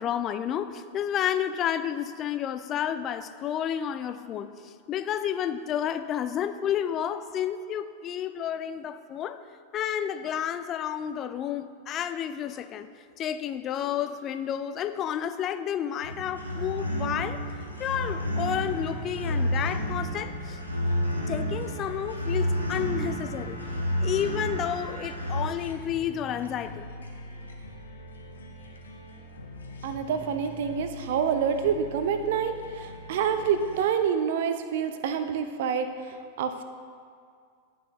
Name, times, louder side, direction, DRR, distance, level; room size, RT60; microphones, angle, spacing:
voice 1, 0.0-9.4 9.7-12.9 13.2-17.4 17.8-20.6 21.2-23.6 24.0-26.9, left 9 dB, 30° left, 11 dB, 0.3 m, -31 dB
sound 1, 16.0-25.4, equal, 90° left, 1.0 m, -30 dB
sound 2, 17.5-33.8, left 1 dB, 70° left, 0.8 m, -43 dB
voice 2, 29.8-35.9 36.4-36.6, right 7 dB, 55° right, 8 dB, 0.5 m, -27 dB
11.0 x 6.0 x 3.0 m, 2.2 s
figure-of-eight pair, 90°, 0 cm